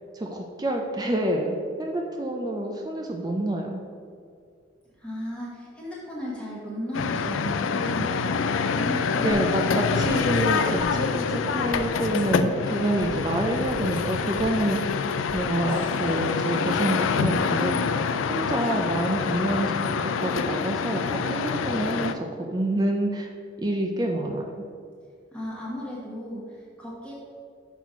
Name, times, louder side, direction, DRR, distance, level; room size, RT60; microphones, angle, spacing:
voice 1, 0.1-3.8 9.2-14.9 15.3-23.3 23.6-24.5, right 1 dB, 20° right, 2 dB, 0.4 m, -27 dB
voice 2, 5.0-8.4 8.7-9.4 25.3-27.1, equal, 5° left, -6 dB, 1.3 m, -35 dB
sound 1, 6.9-22.1, left 5 dB, 85° left, 0.4 m, -26 dB
sound 2, 9.3-9.4 10.0-10.4 10.8-10.9 11.7-11.8 12.2-12.3 13.0-13.1 13.7-14.0 14.4-14.5 15.3-15.4 15.7-16.7, equal, 25° left, 0.7 m, -43 dB
6.2 x 4.2 x 5.7 m, 2.3 s
head